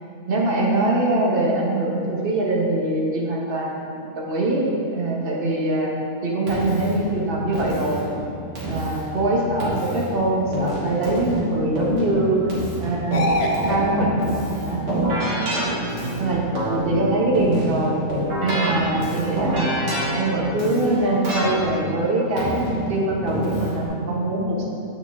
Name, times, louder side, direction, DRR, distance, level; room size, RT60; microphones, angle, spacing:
voice 1, 0.3-4.6 4.9-5.9 6.2-8.0 8.6-12.5 12.8-14.1 14.5-14.8 16.2-18.0 18.4-24.6, right 2 dB, 45° right, -2 dB, 1.1 m, -23 dB
Keyboard (musical), 6.5-23.9, right 1 dB, 90° right, 2.0 m, -28 dB
sound 1, 13.1-15.5 18.6-18.8, left 1 dB, 85° left, 0.3 m, -26 dB
7.9 x 4.7 x 3.5 m, 2.7 s
omnidirectional pair, 1.5 m